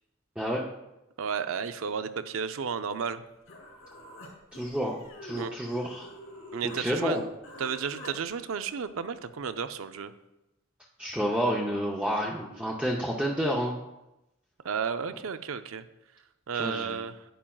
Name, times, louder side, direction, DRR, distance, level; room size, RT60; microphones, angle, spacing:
voice 1, 1.2-3.2 5.4-5.6 6.5-7.2 7.6-10.1 14.6-15.8 16.5-17.2, right 6 dB, 75° right, 11 dB, 0.5 m, -32 dB
Human voice, 3.5-6.8 7.1-8.1, left 1 dB, 85° left, 3.0 m, -46 dB
voice 2, 4.5-6.1 6.6-7.2 11.0-13.8 16.5-17.0, equal, 5° right, -3 dB, 0.6 m, -30 dB
10.0 x 8.8 x 2.3 m, 0.96 s
head